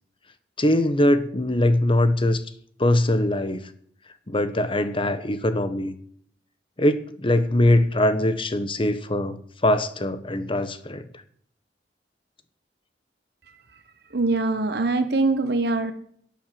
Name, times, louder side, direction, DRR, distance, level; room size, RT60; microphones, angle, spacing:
voice 1, 0.6-2.4 2.8-3.7 4.3-5.9 6.8-9.4 9.6-11.1, left 1 dB, 30° left, 11 dB, 1.1 m, -22 dB
voice 2, 14.1-15.9, right 3 dB, 65° right, 9 dB, 1.1 m, -23 dB
11.0 x 10.5 x 7.6 m, 0.62 s
head